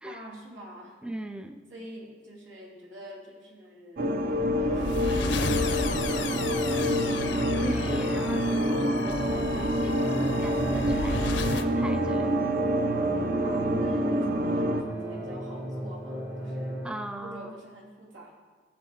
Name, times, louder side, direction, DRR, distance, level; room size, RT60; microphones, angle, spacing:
voice 1, 0.0-1.0 1.7-4.2 4.6-7.1 13.4-16.9 17.2-18.3, equal, 85° right, -3 dB, 2.9 m, -45 dB
voice 2, 1.0-1.6 7.6-12.6 16.8-17.6, right 1 dB, 5° right, 8 dB, 0.4 m, -39 dB
sound 1, 4.0-14.8, equal, 50° right, 0.7 m, -27 dB
sound 2, 4.3-11.7, left 3 dB, 70° left, 0.7 m, -32 dB
sound 3, 10.0-16.9, right 2 dB, 70° right, 3.7 m, -34 dB
16.0 x 7.1 x 4.2 m, 1.4 s
head